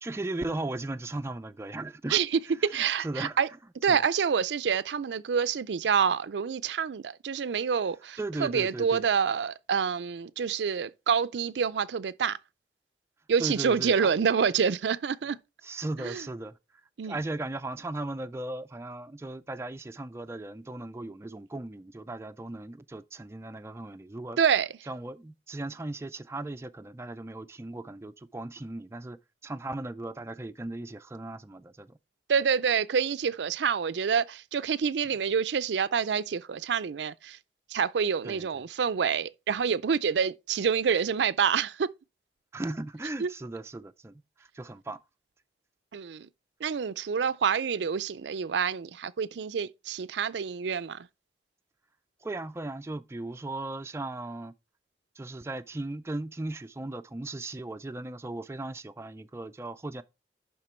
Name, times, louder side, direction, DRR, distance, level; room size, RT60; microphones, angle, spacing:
voice 1, 0.0-2.2 2.5-3.4 3.9-4.0 8.2-9.0 13.4-14.1 15.6-16.5 17.0-24.4 24.9-32.0 38.2-38.6 42.5-45.0 52.2-54.5 55.2-60.0, right 2 dB, 15° right, 0.3 m, -37 dB
voice 2, 2.1-3.5 3.8-12.4 13.3-15.4 16.0-16.2 17.0-17.2 24.4-24.7 32.3-37.4 37.7-41.9 43.2-43.3 45.9-46.3 46.6-51.0, right 6 dB, 85° right, 0.4 m, -27 dB
11.0 x 3.8 x 4.4 m
head